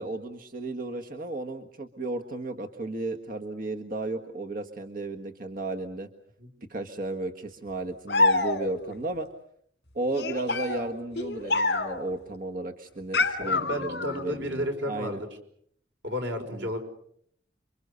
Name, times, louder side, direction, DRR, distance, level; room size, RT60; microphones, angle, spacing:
voice 1, 0.0-6.1 6.7-9.3 9.9-15.2 16.5-16.7, right 2 dB, 50° right, 4 dB, 1.6 m, -34 dB
sound 1, 8.1-8.9 10.1-12.1 13.1-14.2, left 3 dB, 60° left, 3.1 m, -27 dB
voice 2, 13.4-15.3 16.0-16.8, left 1 dB, 85° right, 4 dB, 5.5 m, -32 dB
29.0 x 24.5 x 6.8 m, 0.66 s
head